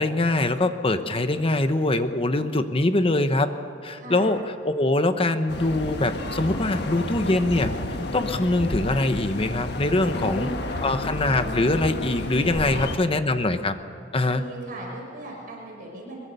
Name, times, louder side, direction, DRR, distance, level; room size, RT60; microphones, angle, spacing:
voice 1, 0.0-3.5 3.8-7.7 8.1-10.5 10.8-13.7 14.1-14.5, left 2 dB, 30° left, 9 dB, 1.1 m, -23 dB
voice 2, 4.0-4.3 10.1-10.9 12.5-12.9 14.3-16.2, right 1 dB, 50° right, -1 dB, 5.5 m, -38 dB
sound 1, 5.5-13.0, left 1 dB, 65° left, 1.6 m, -31 dB
22.5 x 22.0 x 6.9 m, 2.6 s
head